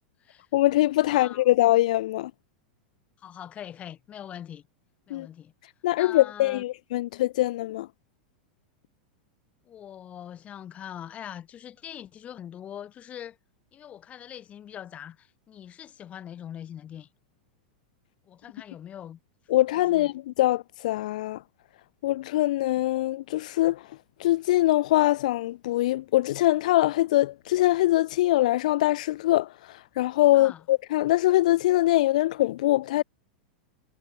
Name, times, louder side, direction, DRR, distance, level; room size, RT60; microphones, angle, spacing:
voice 1, 0.5-2.3 5.1-5.3 5.8-7.9 19.5-21.4 22.0-33.0, left 16 dB, 65° left, 0.7 m, -23 dB
voice 2, 1.1-1.4 3.2-4.7 5.1-5.5 6.0-6.6 9.7-13.4 13.7-17.1 18.3-19.2 19.8-20.1 30.3-30.7, left 10 dB, 30° left, 3.9 m, -42 dB
hypercardioid pair, 95°, 4 cm